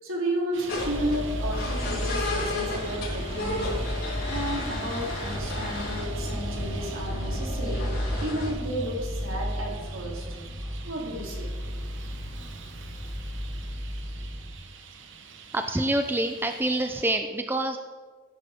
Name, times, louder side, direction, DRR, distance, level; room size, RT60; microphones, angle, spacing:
voice 1, 0.0-3.8 4.2-10.3 10.8-11.5, right 1 dB, 80° right, -2 dB, 3.0 m, -33 dB
Traffic noise roadway noise, 0.5-17.1, right 5 dB, 65° right, 1.0 m, -45 dB
sound 1, 0.7-8.5, left 1 dB, 85° left, 4.2 m, -33 dB
sound 2, 0.8-14.5, equal, 10° left, 1.5 m, -34 dB
voice 2, 15.5-17.8, right 1 dB, 10° right, 6 dB, 0.4 m, -26 dB
16.0 x 10.0 x 3.6 m, 1.5 s
head